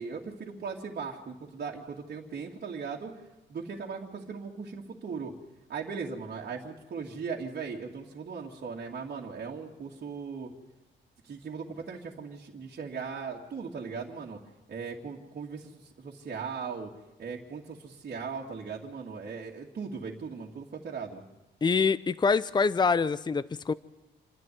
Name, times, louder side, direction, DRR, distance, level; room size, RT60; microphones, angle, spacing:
voice 1, 0.0-3.1 3.5-5.3 5.7-10.5 11.2-14.4 14.7-16.9 17.2-21.2, right 5 dB, 50° right, -3 dB, 2.6 m, -38 dB
voice 2, 21.6-23.7, left 5 dB, 20° left, 16 dB, 0.6 m, -25 dB
27.5 x 11.0 x 9.5 m, 1.0 s
cardioid pair, 90°, 20 cm